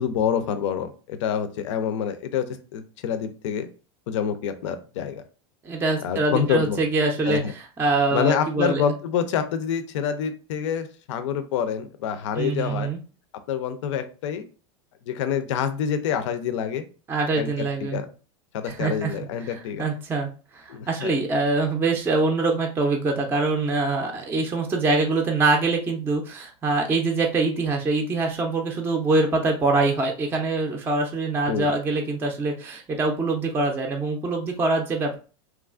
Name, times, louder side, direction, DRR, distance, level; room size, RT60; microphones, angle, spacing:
voice 1, 0.0-2.5 2.7-3.7 4.1-5.2 6.0-6.8 7.2-7.5 8.1-12.9 13.5-14.5 15.0-16.8 17.3-18.1 18.5-19.9 20.7-21.2 31.5-31.7, left 8 dB, 75° left, 9 dB, 0.5 m, -27 dB
voice 2, 5.6-8.8 12.4-13.0 17.1-18.0 18.7-19.1 19.4-20.3 20.5-35.2, right 3 dB, 15° right, 2 dB, 0.4 m, -24 dB
3.0 x 2.4 x 2.3 m, 0.35 s
supercardioid pair, 125°, 16 cm